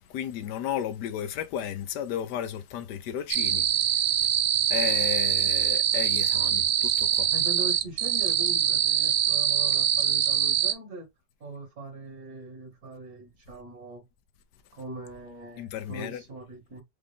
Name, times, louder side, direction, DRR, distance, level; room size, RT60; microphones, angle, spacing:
voice 1, 0.1-3.7 4.1-4.3 4.7-7.3 15.6-16.2, left 10 dB, 75° left, 1.2 m, -33 dB
sound 1, 3.3-10.7, right 9 dB, 70° right, 1.0 m, -24 dB
voice 2, 7.3-11.1 11.4-14.0 14.7-16.8, right 2 dB, 55° right, 2.1 m, -41 dB
5.0 x 2.5 x 3.4 m
omnidirectional pair, 1.9 m